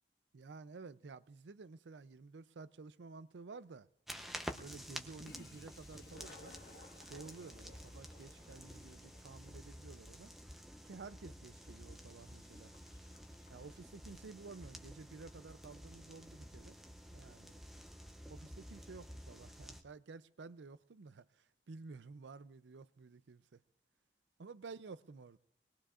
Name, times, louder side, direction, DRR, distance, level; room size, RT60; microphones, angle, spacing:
voice 1, 0.3-3.9 4.5-6.5 7.0-10.3 10.8-12.7 13.5-16.8 17.1-17.6 18.3-23.6 24.4-25.4, right 4 dB, 90° right, 0.5 m, -52 dB
sound 1, 4.1-19.8, equal, ahead, 0.7 m, -51 dB
Toilet flush, 5.2-14.6, left 2 dB, 65° left, 1.5 m, -61 dB
24.5 x 20.5 x 2.5 m
head